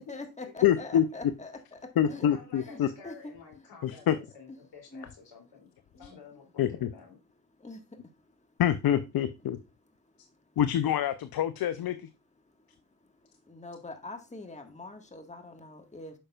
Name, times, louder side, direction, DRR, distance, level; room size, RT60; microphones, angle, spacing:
voice 1, 0.0-2.3 2.5-3.3 4.1-4.2 4.9-5.1 6.0-6.1 7.6-7.8 13.5-16.1, left 2 dB, 15° left, 1.6 m, -43 dB
voice 2, 0.6-1.0 2.0-2.9 3.8-4.2 6.6-6.9 8.6-9.6 10.6-12.1, left 10 dB, 50° left, 0.7 m, -26 dB
voice 3, 2.1-6.7 6.9-7.2, left 5 dB, 65° left, 3.1 m, -51 dB
8.9 x 6.4 x 2.4 m
hypercardioid pair, 40°, 46 cm